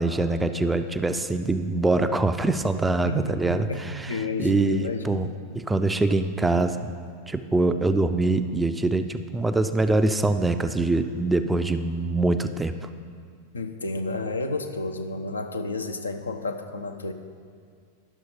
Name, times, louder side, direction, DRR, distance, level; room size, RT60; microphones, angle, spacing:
voice 1, 0.0-5.3 5.7-6.9 7.3-12.7, right 2 dB, 10° right, 9 dB, 0.4 m, -24 dB
voice 2, 3.0-5.4 13.5-17.1, left 2 dB, 75° left, 6 dB, 0.6 m, -31 dB
11.0 x 6.3 x 5.0 m, 2.1 s
figure-of-eight pair, 90°, 0 cm